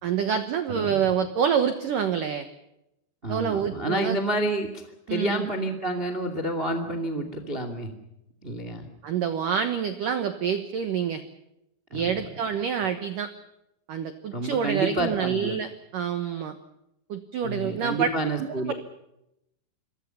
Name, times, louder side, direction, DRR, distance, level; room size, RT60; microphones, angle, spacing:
voice 1, 0.0-2.5 3.3-4.2 5.1-5.5 9.0-11.2 11.9-13.3 13.9-16.5 17.1-18.1 18.6-18.7, right 8 dB, 85° right, 9 dB, 1.9 m, -27 dB
voice 2, 3.2-4.7 5.1-7.9 8.4-8.9 11.9-12.2 14.3-15.6 17.4-18.7, right 1 dB, 30° right, 8 dB, 1.0 m, -29 dB
28.5 x 23.5 x 5.8 m, 0.85 s
omnidirectional pair, 5.8 m